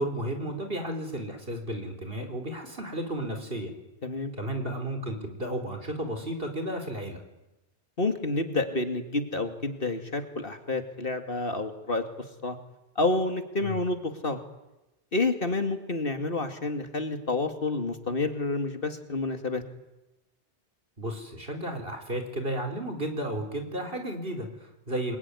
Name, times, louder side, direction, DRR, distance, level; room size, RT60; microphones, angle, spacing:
voice 1, 0.0-3.7 4.4-7.2 13.6-13.8 21.0-25.2, right 1 dB, 55° right, 5 dB, 4.5 m, -33 dB
voice 2, 4.0-4.3 8.0-12.0 12.4-12.6 13.0-14.4 15.1-19.6, left 2 dB, 55° left, 7 dB, 2.5 m, -29 dB
28.0 x 22.0 x 9.8 m, 0.98 s
omnidirectional pair, 1.1 m